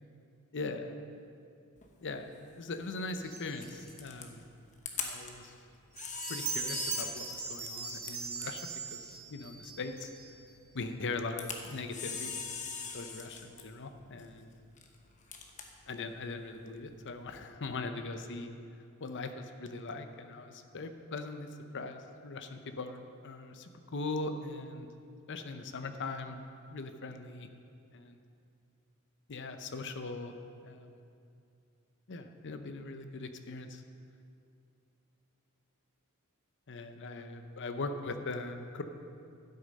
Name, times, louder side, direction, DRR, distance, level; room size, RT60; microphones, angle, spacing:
voice 1, 0.5-1.0 2.0-4.4 4.9-5.5 6.3-8.6 8.9-10.1 10.7-12.3 12.9-14.5 15.9-18.5 19.0-21.5 21.7-24.9 25.3-26.4 26.7-27.5 27.9-28.2 29.3-30.3 30.6-31.0 32.1-33.8 36.7-38.8, left 3 dB, 55° left, 8 dB, 0.7 m, -40 dB
Camera, 1.8-17.2, left 5 dB, 35° left, 1.0 m, -45 dB
sound 1, 3.2-3.9 6.0-10.5, right 5 dB, 35° right, 3.0 m, -40 dB
12.0 x 8.2 x 5.4 m, 2.5 s
head